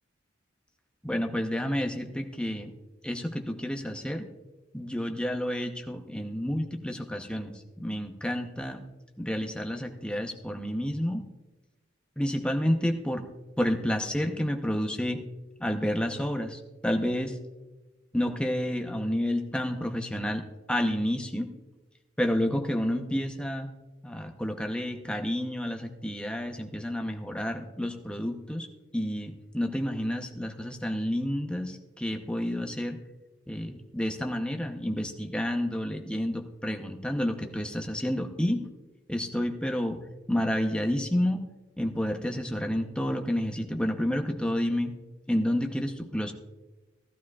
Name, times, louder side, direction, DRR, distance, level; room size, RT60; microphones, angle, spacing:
voice 1, 1.0-2.7 3.0-4.3 4.7-8.8 9.2-11.2 12.2-13.3 13.6-15.2 15.6-17.4 18.1-21.5 22.2-23.7 24.0-28.7 28.9-33.0 33.5-38.7 39.1-41.5 41.8-44.9 45.3-46.3, equal, 5° left, 4 dB, 0.8 m, -30 dB
16.0 x 12.0 x 2.4 m, 1.1 s
head